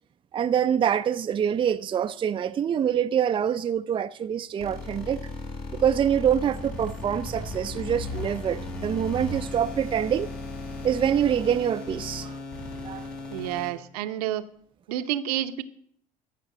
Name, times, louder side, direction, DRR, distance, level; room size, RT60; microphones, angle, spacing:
voice 1, 0.3-5.3 5.7-10.3 10.8-12.3 12.8-13.1, right 9 dB, 25° right, 0.5 m, -25 dB
sound 1, 4.6-13.7, left 2 dB, 55° left, 4.0 m, -36 dB
voice 2, 13.3-14.5 14.9-15.6, right 12 dB, 75° right, 0.8 m, -29 dB
15.0 x 5.8 x 7.5 m
hypercardioid pair, 70°, 20 cm